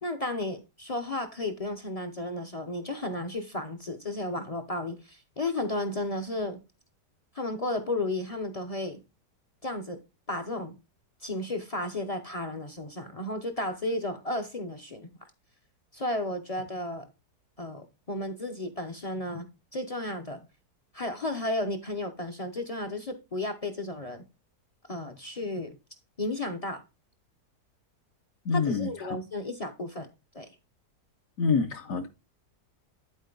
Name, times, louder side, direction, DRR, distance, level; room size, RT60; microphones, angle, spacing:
voice 1, 0.0-6.6 7.3-9.0 9.6-10.0 10.3-10.8 11.2-15.1 15.9-17.1 17.6-19.5 19.7-20.4 20.9-24.2 24.9-25.8 26.2-26.8 28.5-30.1 30.3-30.5, left 2 dB, 40° left, 0.5 m, -33 dB
voice 2, 28.4-29.2 31.4-32.1, left 4 dB, 60° left, 1.1 m, -27 dB
11.0 x 4.4 x 3.9 m
omnidirectional pair, 1.7 m